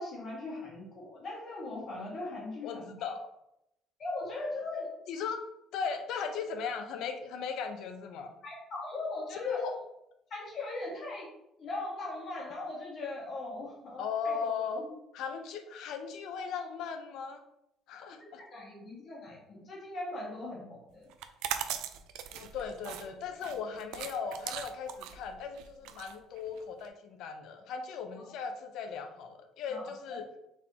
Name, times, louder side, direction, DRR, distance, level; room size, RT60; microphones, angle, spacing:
voice 1, 0.0-3.1 4.0-4.9 8.4-9.6 10.3-11.3 11.6-14.8 18.2-21.1 28.2-28.3 29.7-30.4, left 2 dB, 35° left, -4 dB, 1.3 m, -40 dB
voice 2, 2.6-3.3 5.1-5.4 5.7-8.3 9.4-9.8 14.0-14.8 15.1-17.4 17.9-18.4 22.3-30.2, left 6 dB, 60° left, 6 dB, 0.5 m, -37 dB
sound 1, 21.1-26.9, right 10 dB, 80° right, 0.3 m, -39 dB
4.1 x 3.5 x 2.8 m, 0.83 s
cardioid pair, 175°, 0 cm